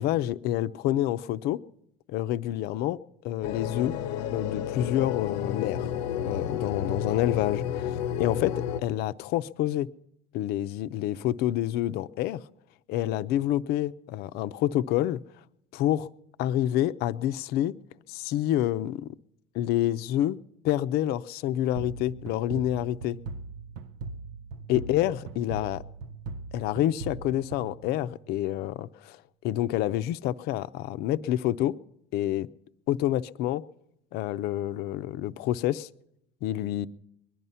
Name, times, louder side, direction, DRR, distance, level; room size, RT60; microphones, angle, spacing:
voice 1, 0.0-1.6 2.1-3.0 3.2-3.9 4.3-5.9 6.2-8.5 8.8-9.9 10.3-12.4 12.9-15.2 15.7-16.1 16.4-17.7 18.1-19.1 19.5-20.4 20.6-23.2 24.7-25.8 26.5-29.2 29.4-31.7 32.1-32.5 32.9-33.6 34.1-35.9 36.4-36.9, left 13 dB, 65° left, 0.6 m, -28 dB
sound 1, 3.4-8.8, left 9 dB, 85° left, 0.8 m, -31 dB
sound 2, 21.8-28.4, right 4 dB, 85° right, 0.7 m, -40 dB
21.0 x 11.0 x 5.6 m
cardioid pair, 130°, 18 cm